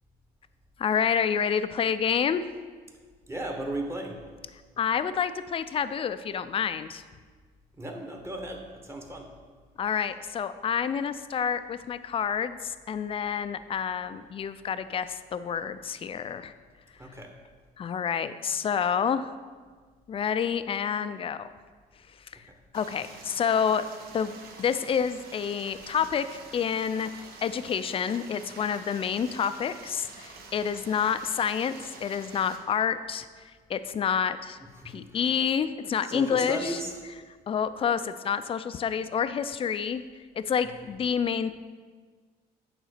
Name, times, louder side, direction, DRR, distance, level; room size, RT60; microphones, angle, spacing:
voice 1, 0.8-2.5 4.8-7.0 9.8-16.5 17.8-19.3 20.1-21.5 22.3-22.4 22.7-23.9 24.1-27.1 27.4-31.7 32.0-33.3 33.7-34.6 34.8-36.8 37.5-40.0 40.5-41.6, left 7 dB, 35° left, 12 dB, 0.4 m, -28 dB
voice 2, 3.3-4.2 7.8-9.3 17.0-17.3 34.8-35.0 36.1-36.9, right 1 dB, 15° right, 2 dB, 1.2 m, -35 dB
Stream, 22.7-32.6, right 3 dB, 65° right, 1.2 m, -47 dB
9.0 x 4.0 x 6.6 m, 1.5 s
cardioid pair, 110°, 17 cm